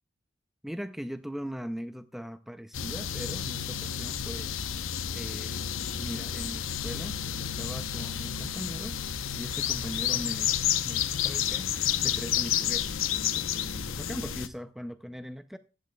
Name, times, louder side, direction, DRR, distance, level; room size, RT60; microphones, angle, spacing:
voice 1, 0.6-5.6 5.9-15.6, equal, ahead, 0.4 m, -40 dB
sound 1, 2.7-14.5, left 9 dB, 90° left, 0.8 m, -31 dB
16.0 x 11.0 x 2.2 m
head